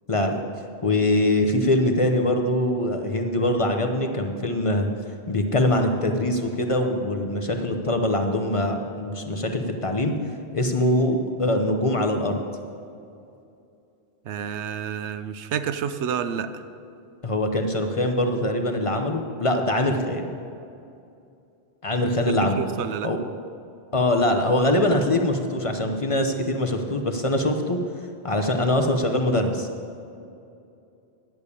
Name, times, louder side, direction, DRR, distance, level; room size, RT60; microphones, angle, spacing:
voice 1, 0.1-0.4 0.8-4.9 5.3-10.1 10.5-12.4 17.2-20.3 21.8-22.6 23.0-23.2 23.9-27.8 28.2-29.7, left 1 dB, 35° left, 4 dB, 0.8 m, -23 dB
voice 2, 14.3-16.5 22.3-23.1, right 8 dB, 90° right, 11 dB, 0.9 m, -29 dB
10.5 x 6.9 x 8.3 m, 2.6 s
omnidirectional pair, 1.1 m